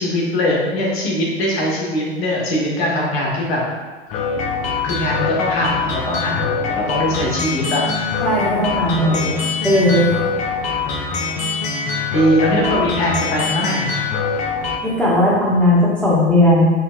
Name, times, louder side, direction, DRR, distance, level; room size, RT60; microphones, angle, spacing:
voice 1, 0.0-3.6 4.8-7.9 9.0-9.4 12.1-13.9, equal, 65° left, -4 dB, 1.2 m, -21 dB
sound 1, 4.1-14.8, left 5 dB, 25° left, 0.3 m, -23 dB
voice 2, 8.2-9.2 9.6-10.1 14.8-16.7, left 1 dB, 5° left, -7 dB, 1.0 m, -16 dB
4.2 x 3.0 x 2.2 m, 1.4 s
figure-of-eight pair, 90°, 33 cm